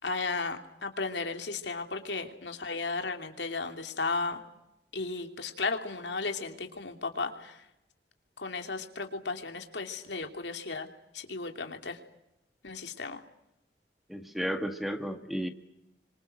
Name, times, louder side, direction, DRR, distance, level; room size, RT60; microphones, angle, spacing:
voice 1, 0.0-4.4 4.9-7.6 8.4-10.9 11.1-12.0 12.6-13.2, left 3 dB, 85° left, 5 dB, 3.0 m, -34 dB
voice 2, 14.1-15.5, equal, ahead, 7 dB, 1.7 m, -33 dB
29.5 x 25.5 x 6.6 m, 0.86 s
head